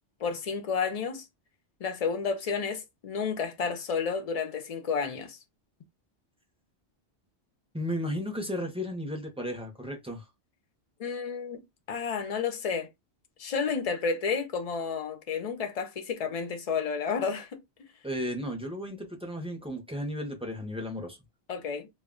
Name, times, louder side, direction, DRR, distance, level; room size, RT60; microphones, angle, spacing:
voice 1, 0.2-1.3 1.8-5.4 11.0-11.6 11.9-12.9 13.4-17.6 21.5-21.9, left 5 dB, 55° left, 0.4 m, -31 dB
voice 2, 7.7-10.3 18.0-21.2, equal, 10° right, 0.4 m, -34 dB
2.2 x 2.1 x 3.5 m
omnidirectional pair, 1.2 m